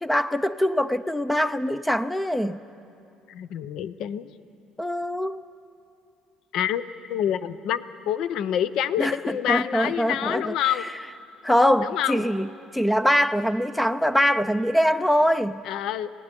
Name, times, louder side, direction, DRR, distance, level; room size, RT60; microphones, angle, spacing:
voice 1, 0.0-2.6 4.8-5.4 9.0-10.5 11.4-12.5 12.7-15.6, equal, 5° left, 14 dB, 0.4 m, -23 dB
voice 2, 3.3-4.3 6.5-6.8 7.1-10.8 11.8-12.3 15.6-16.1, left 10 dB, 65° left, 15 dB, 0.7 m, -27 dB
28.5 x 18.0 x 5.3 m, 2.5 s
cardioid pair, 135°, 0 cm